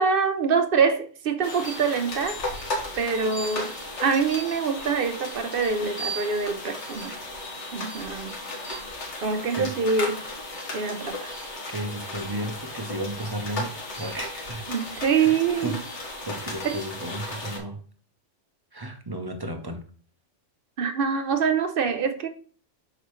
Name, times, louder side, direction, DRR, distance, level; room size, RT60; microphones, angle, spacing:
voice 1, 0.0-2.4 3.0-3.7 4.0-7.2 7.7-8.4 9.2-10.2 10.7-11.3 14.7-15.8 16.6-16.8 20.8-22.3, right 5 dB, 55° right, 0.8 m, -25 dB
sound 1, 1.4-17.6, left 1 dB, 65° left, 1.8 m, -35 dB
voice 2, 11.7-14.7 15.2-15.8 16.3-17.8 18.7-19.8, right 1 dB, 30° right, 0.4 m, -33 dB
6.3 x 4.9 x 3.1 m
omnidirectional pair, 1.3 m